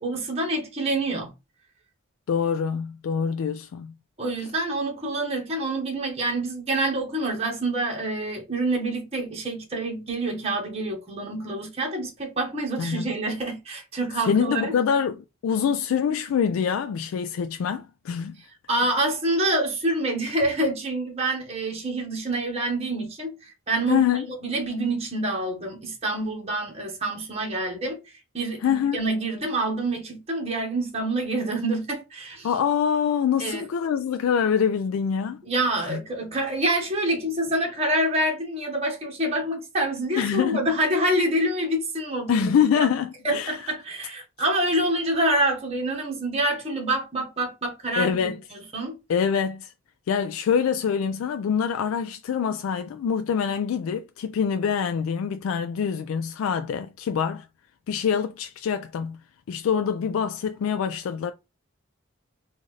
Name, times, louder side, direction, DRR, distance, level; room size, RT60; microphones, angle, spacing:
voice 1, 0.0-1.3 4.2-14.7 18.7-24.0 24.4-28.0 28.3-32.5 33.4-33.6 35.4-42.9 43.2-49.0, right 1 dB, 30° right, 1.2 m, -27 dB
voice 2, 2.3-3.9 12.8-13.0 14.3-18.4 23.9-24.3 28.6-29.0 32.4-35.4 35.8-36.0 40.2-40.6 42.3-43.5 48.0-48.4 49.1-49.7 50.1-57.5 57.9-59.2 59.5-61.3, left 7 dB, 85° left, 0.3 m, -25 dB
3.9 x 2.5 x 3.1 m
head